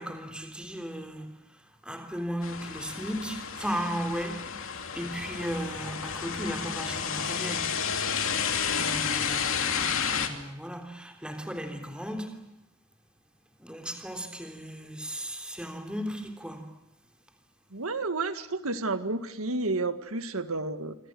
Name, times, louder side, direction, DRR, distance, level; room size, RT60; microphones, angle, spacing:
voice 1, 0.0-7.9 8.7-12.4 13.6-16.8, equal, 5° right, 3.3 m, -36 dB
sound 1, 2.4-10.3, left 7 dB, 70° left, 2.8 m, -31 dB
voice 2, 17.7-21.0, right 3 dB, 85° right, 1.9 m, -31 dB
26.0 x 26.0 x 7.7 m
head